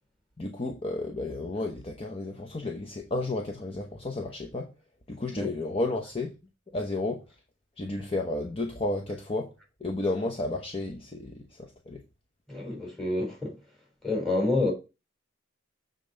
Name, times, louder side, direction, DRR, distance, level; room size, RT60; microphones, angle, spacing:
voice 1, 0.4-4.7 5.1-6.3 6.7-7.3 7.8-9.5 9.8-12.0, left 2 dB, 30° left, 0.9 m, -32 dB
voice 2, 12.5-13.5 14.0-14.7, left 2 dB, ahead, 3.3 m, -28 dB
7.5 x 3.8 x 6.4 m
head